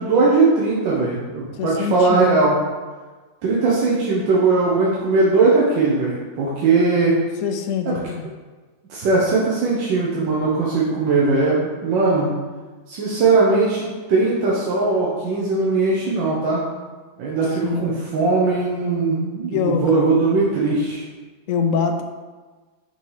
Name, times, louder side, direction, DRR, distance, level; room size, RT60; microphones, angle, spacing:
voice 1, 0.0-2.6 3.4-7.2 7.9-8.0 8.9-12.3 12.9-16.6 17.2-21.0, right 3 dB, 90° right, -6 dB, 1.6 m, -19 dB
voice 2, 1.5-2.3 7.4-8.3 17.6-17.8 19.5-20.1 21.5-22.0, left 6 dB, 70° left, 4 dB, 0.7 m, -24 dB
5.7 x 3.1 x 5.6 m, 1.3 s
omnidirectional pair, 1.9 m